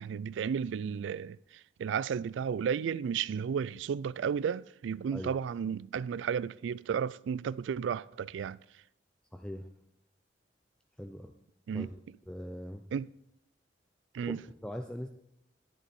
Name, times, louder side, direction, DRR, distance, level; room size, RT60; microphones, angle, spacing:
voice 1, 0.0-1.4 1.8-8.6 11.7-11.9 12.9-13.1 14.1-14.4, right 7 dB, 80° right, 0.3 m, -33 dB
voice 2, 9.3-9.7 11.0-11.3 11.7-11.9 12.3-12.8 14.2-15.1, equal, 5° left, 0.4 m, -41 dB
10.5 x 10.0 x 4.3 m
head